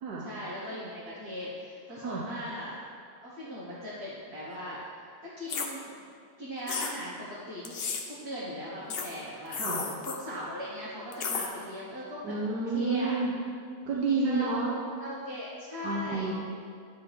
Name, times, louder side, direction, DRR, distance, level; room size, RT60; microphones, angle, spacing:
voice 1, 0.2-2.8 3.2-4.8 5.4-5.9 6.4-7.7 8.1-12.3 12.7-13.1 13.9-16.3, equal, 40° right, -9 dB, 1.5 m, -39 dB
sound 1, 5.5-5.7 6.7-6.9 7.6-8.0 8.9-9.1 9.5-10.2 11.1-11.5, left 5 dB, 60° left, 0.6 m, -33 dB
voice 2, 12.2-13.3 13.9-14.7 15.8-16.3, right 3 dB, 75° right, -3 dB, 1.3 m, -29 dB
10.5 x 3.7 x 4.7 m, 2.2 s
omnidirectional pair, 1.7 m